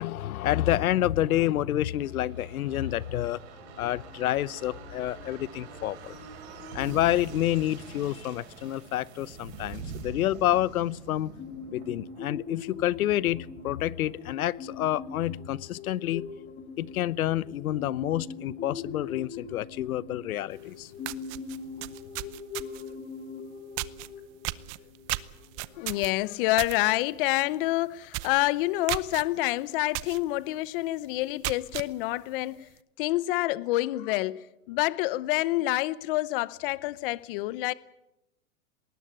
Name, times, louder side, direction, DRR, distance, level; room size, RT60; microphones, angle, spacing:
voice 1, 0.0-3.4 3.8-6.2 6.7-11.3 11.7-16.3 16.8-20.9, left 13 dB, 80° left, 1.0 m, -28 dB
sound 1, 1.7-15.2 15.5-15.6, right 4 dB, 50° right, 6.8 m, -45 dB
sound 2, 11.4-25.8, left 5 dB, 20° left, 3.0 m, -42 dB
sound 3, 20.6-20.7 21.0-22.9 23.8-24.1 24.4-26.8 27.1-27.4 27.7-27.8 28.1-28.4 28.9-29.2 29.9-30.2 30.6-30.7 31.2-31.9, right 22 dB, 30° right, 0.7 m, -34 dB
voice 2, 25.7-32.7 33.0-37.7, left 18 dB, 40° left, 0.8 m, -27 dB
19.5 x 19.5 x 9.1 m
hypercardioid pair, 150°, 43 cm